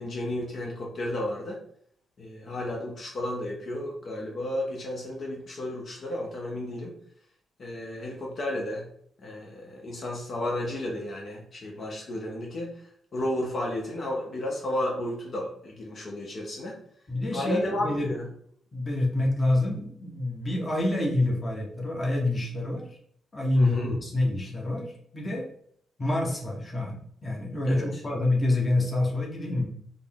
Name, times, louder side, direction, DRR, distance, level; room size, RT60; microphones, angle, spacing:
voice 1, 0.0-1.6 2.2-6.9 7.6-8.9 9.2-12.8 13.1-16.8 17.3-18.3 23.6-24.0 27.7-28.0, left 1 dB, 55° left, -2 dB, 0.8 m, -32 dB
voice 2, 17.1-18.1 18.7-22.9 23.3-25.5 26.0-27.0 27.2-29.7, left 2 dB, 30° left, 0 dB, 0.9 m, -27 dB
3.9 x 2.0 x 3.5 m, 0.64 s
cardioid pair, 80°, 0 cm